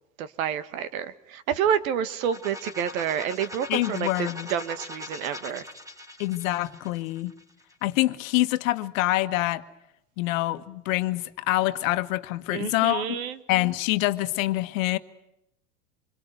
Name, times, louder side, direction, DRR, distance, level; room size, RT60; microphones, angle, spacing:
voice 1, 0.2-5.6 12.5-13.4, right 8 dB, 70° right, 1.9 m, -29 dB
sound 1, 2.1-7.9, left 1 dB, 5° right, 2.5 m, -41 dB
voice 2, 3.7-4.5 6.2-7.3 7.8-9.6 10.2-13.2 13.5-15.0, left 17 dB, 60° left, 1.5 m, -26 dB
26.5 x 21.5 x 9.3 m
hypercardioid pair, 115°, 44 cm